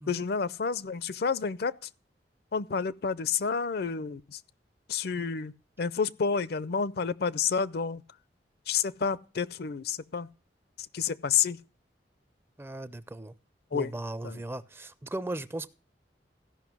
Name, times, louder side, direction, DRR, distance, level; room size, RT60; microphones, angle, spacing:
voice 1, 0.1-1.7 2.5-4.4 4.9-5.5 5.8-8.0 8.7-10.3 10.9-11.6 13.7-13.9 14.2-14.4, left 6 dB, 60° left, 0.5 m, -29 dB
voice 2, 12.6-13.3 13.7-15.7, right 1 dB, 15° right, 0.4 m, -37 dB
14.5 x 5.7 x 6.0 m
head